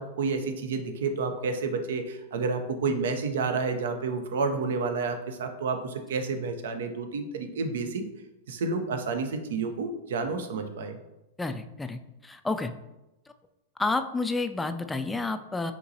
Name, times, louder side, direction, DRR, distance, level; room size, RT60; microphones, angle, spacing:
voice 1, 0.0-8.0 8.5-11.0, right 4 dB, 70° right, 7 dB, 0.6 m, -30 dB
voice 2, 11.4-12.7 13.8-15.7, left 3 dB, 10° left, 8 dB, 0.3 m, -30 dB
5.7 x 2.9 x 2.8 m, 0.96 s
hypercardioid pair, 100°, 0 cm